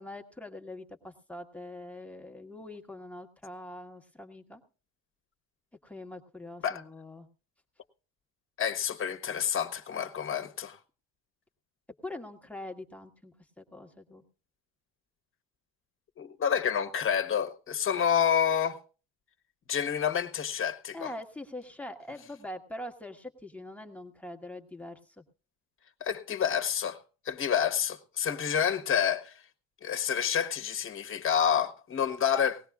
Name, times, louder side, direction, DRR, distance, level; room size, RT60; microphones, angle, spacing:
voice 1, 0.0-4.6 5.8-7.3 12.0-14.2 20.9-25.0, left 1 dB, 5° left, 1.5 m, -43 dB
voice 2, 8.6-10.8 16.2-18.8 19.7-21.1 26.0-27.0 27.2-29.4 29.8-32.6, left 8 dB, 35° left, 1.4 m, -28 dB
19.5 x 16.5 x 2.4 m
cardioid pair, 115°, 37 cm